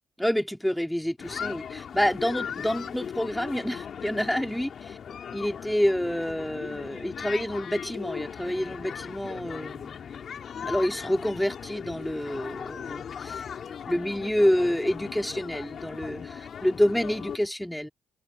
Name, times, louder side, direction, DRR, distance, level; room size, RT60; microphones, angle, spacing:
voice 1, 0.2-5.0 5.3-9.8 10.6-13.5 13.9-17.9, equal, 5° left, 2.9 m, -28 dB
sound 1, 1.2-17.4, left 7 dB, 55° left, 3.5 m, -38 dB
cardioid pair, 90°, 0 cm